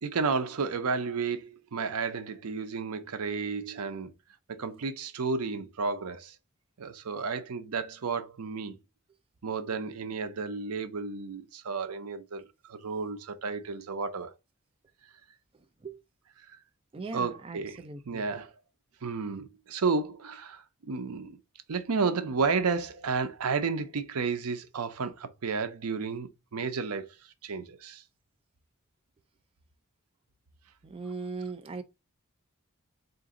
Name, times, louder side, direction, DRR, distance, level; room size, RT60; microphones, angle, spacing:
voice 1, 0.0-4.1 4.5-6.4 6.8-8.8 9.4-12.4 12.7-14.3 17.1-18.5 19.0-21.4 21.7-28.0, right 4 dB, 90° right, 0.6 m, -32 dB
voice 2, 16.9-18.2 30.8-31.8, right 4 dB, 25° right, 0.4 m, -39 dB
3.9 x 2.5 x 3.6 m
head